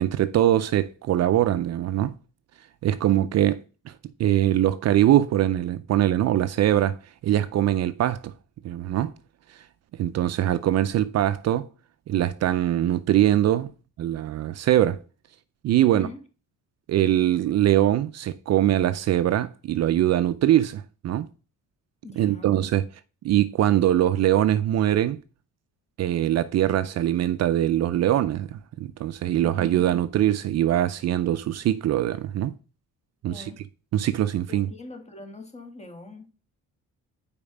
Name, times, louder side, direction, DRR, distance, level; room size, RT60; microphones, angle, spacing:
voice 1, 0.0-2.1 2.8-3.6 3.9-4.0 4.2-7.0 7.2-8.3 8.6-9.1 10.0-11.7 12.1-13.7 14.0-15.0 15.6-16.1 16.9-21.3 22.2-22.8 23.2-25.2 26.0-32.5 33.2-33.5 33.9-34.7, right 12 dB, 55° right, 0.5 m, -22 dB
voice 2, 15.8-16.2 22.0-22.6 29.4-29.8 33.3-33.7 34.5-36.3, left 2 dB, 20° left, 1.3 m, -42 dB
5.3 x 4.9 x 4.8 m
cardioid pair, 120°, 32 cm